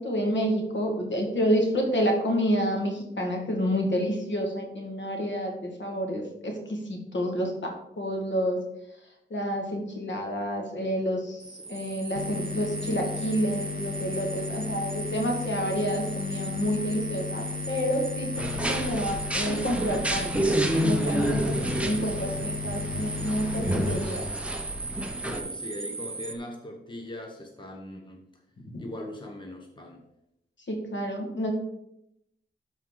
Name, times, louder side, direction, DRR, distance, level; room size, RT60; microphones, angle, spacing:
voice 1, 0.0-8.6 9.3-20.3 20.8-24.3 28.7-28.8 30.7-31.5, equal, 60° left, 1 dB, 2.0 m, -29 dB
sound 1, 11.4-26.4, right 3 dB, 25° right, 0.8 m, -37 dB
sound 2, 12.2-25.1, left 8 dB, 45° left, 0.4 m, -37 dB
sound 3, 18.4-25.4, equal, 5° right, 1.0 m, -29 dB
voice 2, 21.1-21.5 25.2-28.2 28.8-30.0, left 1 dB, 20° left, 1 dB, 1.2 m, -40 dB
12.5 x 4.6 x 3.9 m, 0.81 s
wide cardioid pair, 110°, 21 cm